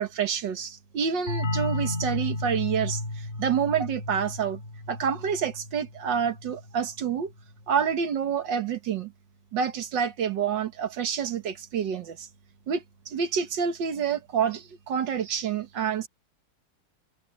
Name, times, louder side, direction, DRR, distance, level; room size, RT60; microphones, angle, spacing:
voice 1, 0.0-4.6 4.9-7.3 7.7-9.1 9.5-12.3 12.7-16.1, right 7 dB, 70° right, 2.0 m, -28 dB
sound 1, 1.3-6.7, left 2 dB, 35° left, 4.0 m, -33 dB
omnidirectional pair, 2.1 m